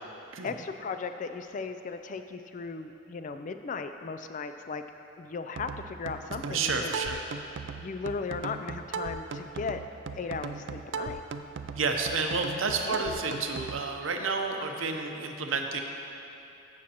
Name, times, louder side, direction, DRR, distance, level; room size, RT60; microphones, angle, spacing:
voice 1, 0.4-4.8 5.2-6.9 7.7-9.8 10.1-11.2 12.6-13.0, left 4 dB, 40° left, 8 dB, 0.3 m, -36 dB
sound 1, 5.6-13.8, right 4 dB, 60° right, 0.3 m, -38 dB
voice 2, 6.5-7.2 11.8-15.8, right 4 dB, 80° right, 4 dB, 0.7 m, -30 dB
15.5 x 6.3 x 2.9 m, 2.9 s
head